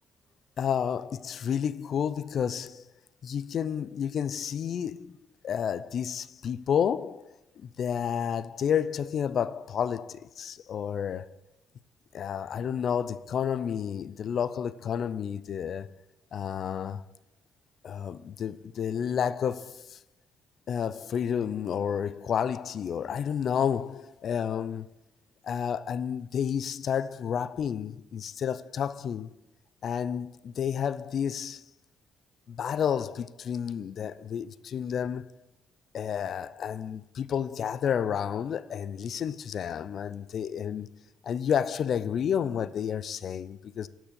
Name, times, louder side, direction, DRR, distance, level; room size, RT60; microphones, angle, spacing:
voice 1, 0.6-2.8 3.2-5.2 5.4-7.3 7.6-11.3 12.1-15.9 16.3-17.0 17.8-20.0 20.7-24.9 25.4-29.3 29.8-31.6 32.5-35.3 35.9-40.9 41.2-43.9, left 8 dB, 60° left, 0.5 m, -30 dB
10.0 x 6.2 x 6.9 m
cardioid pair, 90°, 0 cm